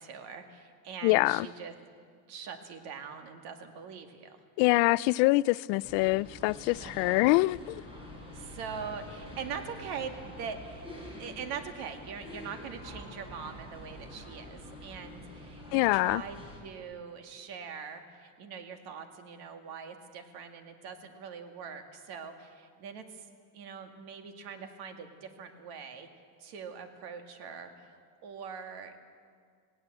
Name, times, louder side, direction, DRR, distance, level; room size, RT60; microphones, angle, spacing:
voice 1, 0.0-1.7 2.3-4.4 6.8-7.4 8.3-10.8 11.2-23.3 23.5-26.1 26.4-29.0, right 6 dB, 65° right, 2.3 m, -42 dB
voice 2, 1.0-1.5 4.6-7.8 15.7-16.2, left 22 dB, 75° left, 0.5 m, -25 dB
sound 1, 5.8-16.6, left 1 dB, 15° right, 5.0 m, -47 dB
19.0 x 17.5 x 8.0 m
cardioid pair, 140°, 41 cm